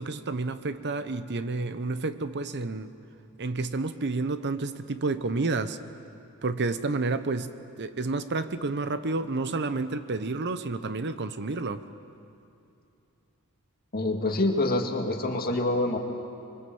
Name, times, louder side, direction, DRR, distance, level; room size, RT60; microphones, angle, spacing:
voice 1, 0.0-2.9 3.4-5.8 6.4-11.8, right 3 dB, 50° right, 11 dB, 0.8 m, -30 dB
voice 2, 13.9-16.0, left 2 dB, 45° left, 3 dB, 2.1 m, -26 dB
25.0 x 23.5 x 7.8 m, 2.6 s
head